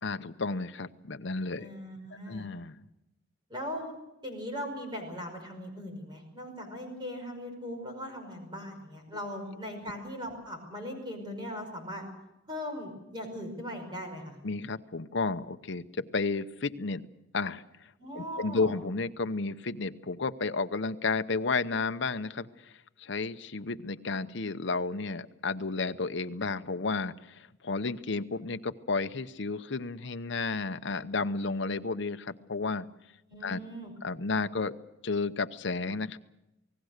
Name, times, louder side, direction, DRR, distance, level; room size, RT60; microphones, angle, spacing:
voice 1, 0.0-1.7 2.3-2.8 14.4-17.0 17.3-17.9 18.1-22.7 23.0-32.9 33.4-33.6 34.0-34.7 35.0-36.2, left 3 dB, 60° left, 9 dB, 0.8 m, -32 dB
voice 2, 1.6-2.5 3.5-3.9 4.2-12.0 12.5-14.4 18.0-18.8 33.3-33.9, equal, 20° right, 4 dB, 5.5 m, -39 dB
28.5 x 19.0 x 6.6 m, 0.90 s
head